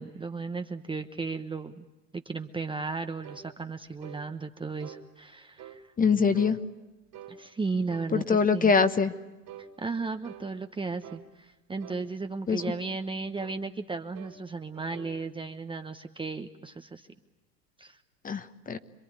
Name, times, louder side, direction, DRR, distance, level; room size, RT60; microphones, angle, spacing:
voice 1, 0.0-1.9 2.1-5.9 7.3-8.7 9.6-17.1 17.8-18.0, right 4 dB, 10° right, 6 dB, 1.0 m, -35 dB
sound 1, 3.2-3.5 4.0-4.2 4.8-5.0 5.6-5.8 6.3-6.6 7.1-7.4 7.9-8.2 8.7-8.9 9.5-9.7 10.2-10.5 11.0-11.3 11.8-12.0 12.6-12.8 13.4-13.6 14.1-14.4 14.7-15.2, right 9 dB, 45° right, 2.9 m, -46 dB
voice 2, 6.0-6.6 8.1-9.1 12.5-12.6 18.2-18.8, left 5 dB, 15° left, 11 dB, 1.2 m, -23 dB
26.5 x 23.0 x 9.7 m, 1.1 s
hypercardioid pair, 100°, 49 cm